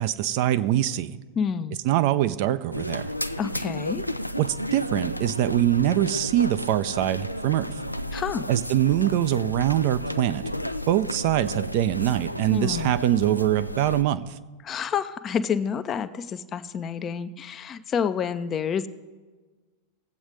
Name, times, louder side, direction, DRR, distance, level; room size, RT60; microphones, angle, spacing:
voice 1, 0.0-1.2 1.8-3.1 4.4-7.7 8.5-10.4 10.9-14.4, right 13 dB, 45° right, 12 dB, 0.4 m, -23 dB
voice 2, 1.4-1.8 3.4-4.0 8.1-8.5 12.5-12.9 14.6-18.9, left 7 dB, 25° left, 12 dB, 0.5 m, -28 dB
sound 1, 2.7-14.0, equal, 90° left, 0.3 m, -32 dB
19.5 x 8.0 x 3.2 m, 1.3 s
figure-of-eight pair, 90°, 0 cm